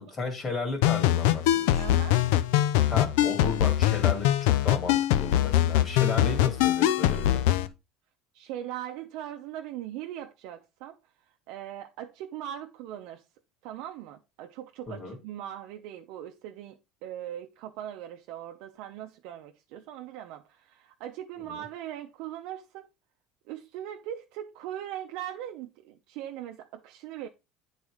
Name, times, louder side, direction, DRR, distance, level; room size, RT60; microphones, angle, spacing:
voice 1, 0.0-1.8 2.9-7.4 14.9-15.2, left 3 dB, 30° left, 2.3 m, -34 dB
sound 1, 0.8-7.7, left 13 dB, 80° left, 0.7 m, -23 dB
voice 2, 1.8-2.2 8.3-11.0 11.5-13.2 13.6-22.9 23.5-27.3, right 11 dB, 70° right, 0.8 m, -40 dB
8.9 x 4.2 x 4.9 m
cardioid pair, 140°, 0 cm